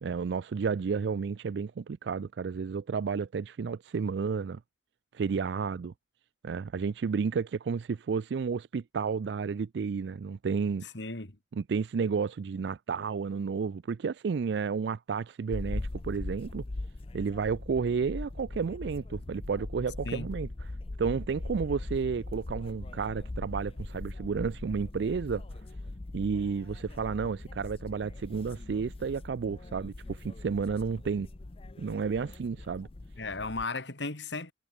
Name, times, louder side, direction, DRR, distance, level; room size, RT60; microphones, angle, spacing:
voice 1, 0.0-4.6 5.1-5.9 6.4-10.9 11.5-16.6 17.1-20.7 21.0-25.4 26.1-31.3 31.8-32.9, right 5 dB, 70° right, 0.4 m, -31 dB
voice 2, 10.9-11.4 20.0-20.3 33.2-34.5, left 3 dB, 80° left, 2.9 m, -35 dB
sound 1, 15.5-33.6, left 2 dB, 35° left, 0.6 m, -40 dB
head